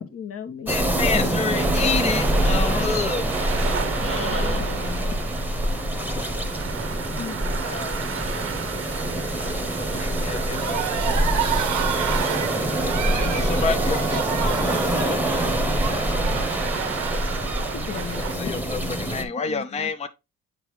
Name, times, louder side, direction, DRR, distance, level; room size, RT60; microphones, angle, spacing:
voice 1, 0.0-0.8 2.7-2.9 3.6-5.2 7.2-7.5 17.5-19.9, left 7 dB, 50° left, 1.2 m, -37 dB
voice 2, 0.7-3.2 4.0-4.6 7.6-8.4 9.8-10.9 12.8-14.0 17.9-20.1, left 4 dB, 20° left, 0.6 m, -29 dB
sound 1, 0.7-19.2, right 1 dB, 5° right, 1.0 m, -25 dB
sound 2, 1.5-18.4, right 8 dB, 45° right, 0.8 m, -34 dB
voice 3, 5.9-6.5 13.1-15.9, left 5 dB, 80° left, 1.2 m, -37 dB
sound 3, 10.5-18.1, right 10 dB, 80° right, 1.0 m, -30 dB
8.9 x 3.8 x 3.1 m
cardioid pair, 90°, 30 cm